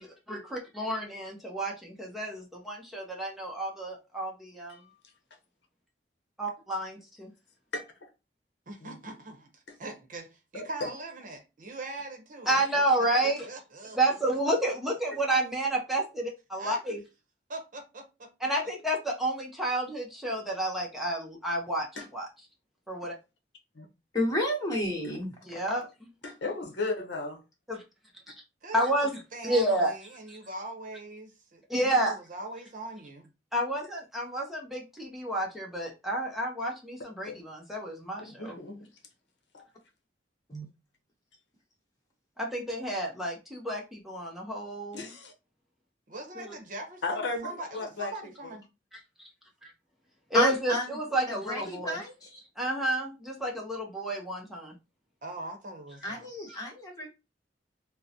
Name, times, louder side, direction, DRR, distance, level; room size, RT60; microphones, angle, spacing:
voice 1, 0.3-4.8 6.4-7.3 12.5-13.5 14.0-17.0 18.4-21.9 22.1-22.3 22.9-23.1 25.4-26.1 27.7-27.8 28.7-29.9 31.7-32.2 33.5-38.6 42.4-45.1 46.4-46.5 49.6-49.7 50.3-52.0 52.6-54.8, right 1 dB, ahead, 0.6 m, -30 dB
voice 2, 7.7-8.1 8.8-9.0 9.7-9.8 10.5-10.9 22.0-22.1 23.7-23.9 26.2-27.4 37.2-37.4 38.2-38.9 39.5-39.7 44.9-45.3 47.0-48.5, left 3 dB, 70° left, 0.7 m, -36 dB
voice 3, 8.7-12.8 13.2-14.0 16.6-16.8 17.5-18.3 28.6-33.3 46.1-48.6 55.2-56.3, right 2 dB, 50° right, 0.8 m, -42 dB
voice 4, 24.1-25.4 40.5-40.6 50.3-50.9 51.3-52.4 56.0-57.1, left 1 dB, 20° left, 1.1 m, -31 dB
3.7 x 2.0 x 2.7 m
head